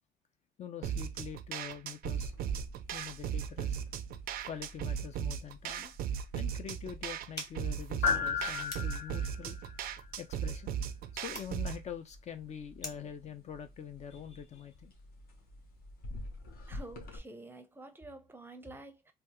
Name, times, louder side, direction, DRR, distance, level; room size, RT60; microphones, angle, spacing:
voice 1, 0.6-2.3 2.9-3.8 4.4-5.9 6.3-9.6 10.2-10.8 11.1-14.9, left 8 dB, 40° left, 0.5 m, -44 dB
sound 1, 0.8-11.8, right 8 dB, 60° right, 0.4 m, -37 dB
sound 2, 2.0-17.2, left 5 dB, 65° left, 1.0 m, -41 dB
sound 3, 7.3-13.2, left 2 dB, 20° left, 1.0 m, -50 dB
voice 2, 16.7-19.1, right 2 dB, 10° right, 0.6 m, -49 dB
3.4 x 2.3 x 2.8 m
cardioid pair, 110°, 17 cm